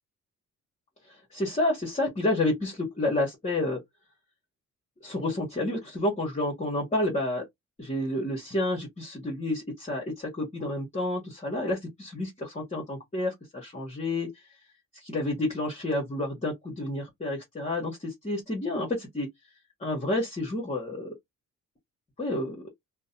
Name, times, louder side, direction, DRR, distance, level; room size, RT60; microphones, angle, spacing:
voice 1, 1.1-3.8 5.0-7.4 7.8-14.3 14.9-19.3 19.8-21.1 22.2-22.6, left 1 dB, 25° left, 1.0 m, -30 dB
2.5 x 2.1 x 2.6 m
cardioid pair, 90°, 30 cm